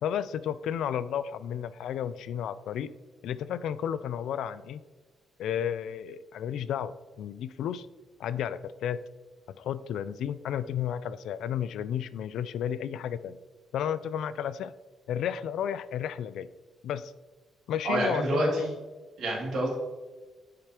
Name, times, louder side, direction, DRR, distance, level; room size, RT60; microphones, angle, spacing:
voice 1, 0.0-2.9 3.2-4.8 5.4-7.9 8.2-9.0 9.6-13.4 13.7-14.7 15.1-16.5 16.8-17.1 17.7-18.7, left 9 dB, 70° left, 15 dB, 0.3 m, -32 dB
voice 2, 17.8-18.7 19.2-19.8, right 1 dB, 60° right, -4 dB, 2.4 m, -27 dB
10.0 x 5.0 x 2.9 m, 1.3 s
cardioid pair, 180°, 0 cm